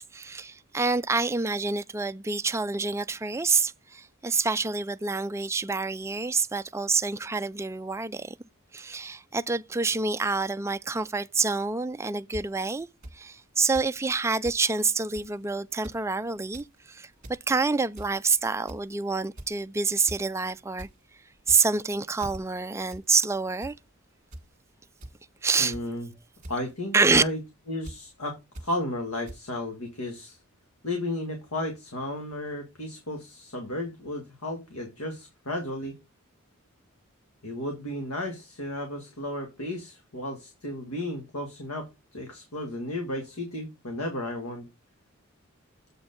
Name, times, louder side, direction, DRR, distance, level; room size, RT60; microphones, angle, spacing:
voice 1, 0.0-8.3 8.7-12.9 13.1-17.1 17.5-20.9 21.5-23.7 25.4-25.8 26.9-27.2, right 4 dB, 10° right, 0.3 m, -27 dB
sound 1, 12.3-12.4 13.0-13.1 13.7-13.9 14.2-14.6 15.1-15.4 15.7-16.0 16.4-16.7 17.1-17.4 18.0-18.3 18.7-18.9 19.4-19.6 20.1-20.2 20.5-20.9 21.4-21.8 22.2-22.4 22.9-23.1 23.4-23.7 24.3-24.5 25.0-25.1 25.7-26.0 26.4-26.7 27.1-27.3 27.8-28.0 28.6-28.7 29.3-29.4, right 1 dB, 35° right, 1.6 m, -42 dB
voice 2, 25.6-26.1 26.5-27.4 27.7-30.4 30.8-36.0 37.4-44.7, left 1 dB, 85° left, 1.8 m, -34 dB
7.7 x 4.5 x 5.1 m
head